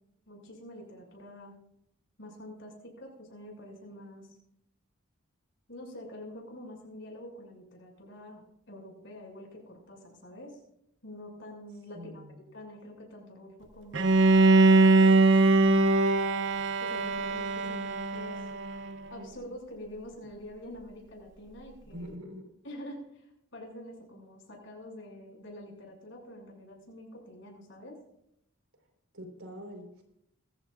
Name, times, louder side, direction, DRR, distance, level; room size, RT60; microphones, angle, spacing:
voice 1, 0.3-1.5 2.2-4.4 5.7-10.6 11.0-12.2 12.5-16.0 16.8-18.5 19.1-22.1 22.6-23.3 23.5-28.0, left 1 dB, 60° left, 0 dB, 6.6 m, -46 dB
voice 2, 11.9-12.4 21.9-22.5 29.1-30.0, equal, 80° right, 3 dB, 4.3 m, -44 dB
Bowed string instrument, 13.9-18.9, right 3 dB, 60° right, 0.8 m, -22 dB
22.5 x 14.5 x 2.5 m, 0.77 s
head